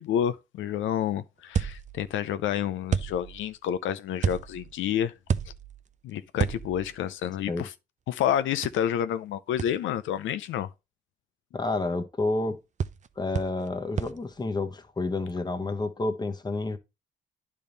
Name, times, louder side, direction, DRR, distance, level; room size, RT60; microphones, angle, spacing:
voice 1, 0.0-5.1 6.0-7.7 8.1-10.7, left 10 dB, 80° left, 0.5 m, -29 dB
sound 1, 1.5-2.2 2.9-3.5 4.2-4.7 5.3-5.9 6.4-7.0 8.6-8.7 9.6-9.7 12.8-13.1 13.4-13.7 14.0-14.2, right 7 dB, 35° right, 0.6 m, -30 dB
voice 2, 11.5-12.6 13.2-16.8, left 2 dB, 20° left, 1.1 m, -29 dB
10.0 x 3.6 x 4.0 m
cardioid pair, 90°, 20 cm